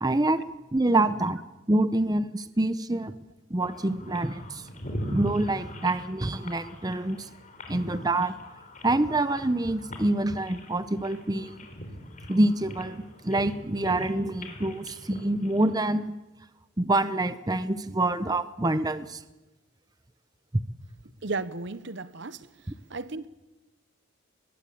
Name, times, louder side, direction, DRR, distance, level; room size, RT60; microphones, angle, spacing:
voice 1, 0.0-0.4 0.7-1.4 1.7-3.1 3.5-4.6 5.1-7.3 7.7-8.3 8.8-11.6 12.3-16.1 16.8-19.2, right 2 dB, 20° right, 0.8 m, -26 dB
sound 1, 3.6-16.0, equal, 40° left, 4.1 m, -41 dB
voice 2, 21.2-22.5 22.9-23.3, right 3 dB, 60° right, 1.0 m, -34 dB
22.0 x 21.0 x 8.5 m
head